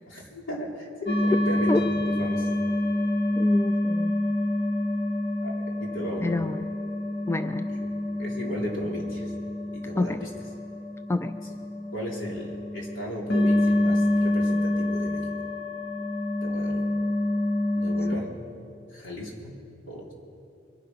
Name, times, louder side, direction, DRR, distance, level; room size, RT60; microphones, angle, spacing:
voice 1, 0.1-2.5 5.4-6.4 7.7-7.9 8.2-9.3 9.7-10.3 11.9-15.2 16.4-16.8 17.7-18.4 18.9-19.5 19.9-20.1, equal, 80° left, -2 dB, 3.4 m, -36 dB
sound 1, 1.1-18.2, left 1 dB, 55° left, 1.9 m, -27 dB
voice 2, 3.4-4.1 6.2-6.5 7.3-7.7 10.0-10.2 11.1-11.3, left 2 dB, 15° left, 10 dB, 0.3 m, -27 dB
24.5 x 9.3 x 5.8 m, 2.4 s
head